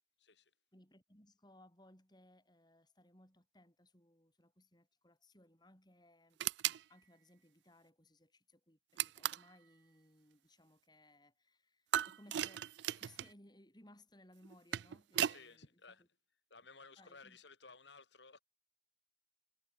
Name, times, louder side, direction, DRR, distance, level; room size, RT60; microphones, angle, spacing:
voice 1, 0.2-0.5 15.2-16.0 16.5-18.4, left 4 dB, 70° left, 4.0 m, -57 dB
voice 2, 0.7-6.4 6.9-16.1 17.0-17.4, left 1 dB, 25° left, 7.5 m, -64 dB
sound 1, 6.4-6.8 9.0-9.5 11.9-13.3 14.4-15.4, right 11 dB, 70° right, 0.4 m, -37 dB
head